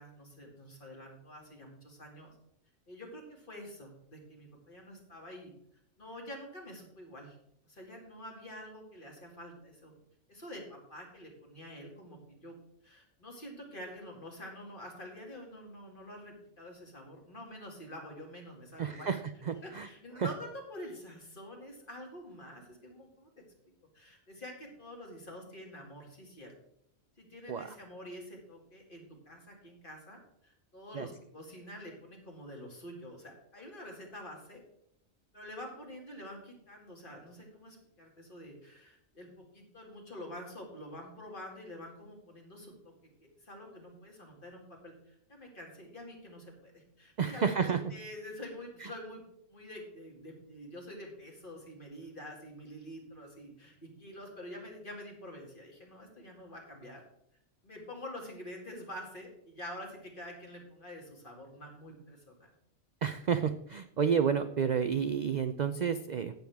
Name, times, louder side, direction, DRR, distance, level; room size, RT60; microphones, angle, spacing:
voice 1, 0.0-2.3 2.9-5.5 6.0-7.4 7.6-9.9 10.3-12.6 12.8-19.1 19.6-23.4 23.9-26.5 27.2-34.6 35.3-42.7 43.4-49.2 49.5-57.0 57.6-62.5, left 1 dB, 40° left, 0 dB, 2.6 m, -47 dB
voice 2, 18.8-19.2 19.5-19.9 20.2-20.3 27.5-27.7 30.9-31.1 47.2-47.8 63.0-66.3, right 7 dB, 65° right, 10 dB, 0.4 m, -30 dB
15.5 x 7.0 x 3.5 m, 0.74 s
omnidirectional pair, 1.4 m